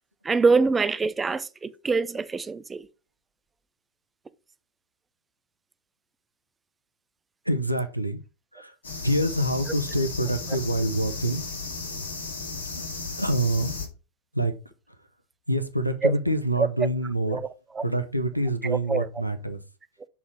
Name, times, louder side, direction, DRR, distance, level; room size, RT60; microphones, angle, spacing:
voice 1, 0.2-2.9 16.0-16.1 17.3-17.4 17.8-17.9 18.6-19.1, right 4 dB, 15° right, 0.4 m, -24 dB
voice 2, 7.4-8.2 8.5-8.8 9.0-11.4 12.7-12.9 13.2-13.8 14.3-14.5 15.0-15.1 15.5-17.4 17.8-19.6, right 1 dB, 90° right, 0.8 m, -26 dB
sound 1, 8.8-13.9, left 4 dB, 70° left, 2.2 m, -35 dB
7.2 x 4.2 x 5.0 m
figure-of-eight pair, 90°, 0 cm